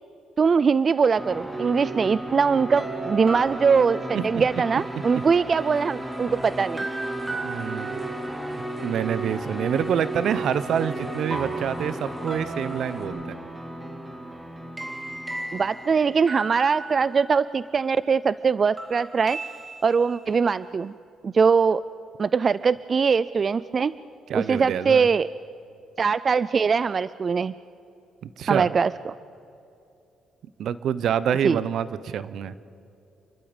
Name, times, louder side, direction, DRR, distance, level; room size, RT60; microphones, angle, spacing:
voice 1, 0.4-6.8 15.5-19.4 19.8-20.9 21.2-21.8 22.2-23.9 24.3-25.3 26.0-27.5 28.5-29.1 31.4-31.6, right 5 dB, 40° right, 18 dB, 0.4 m, -22 dB
sound 1, 1.2-17.8 18.8-20.4, right 2 dB, 15° right, 2.6 m, -34 dB
voice 2, 4.1-4.6 7.3-8.0 8.8-13.4 24.3-25.1 28.2-28.7 30.6-32.5, right 8 dB, 70° right, 16 dB, 0.9 m, -27 dB
sound 2, 4.4-13.0, left 1 dB, 10° left, 5.1 m, -45 dB
28.5 x 12.0 x 8.9 m, 2.8 s
cardioid pair, 90°, 0 cm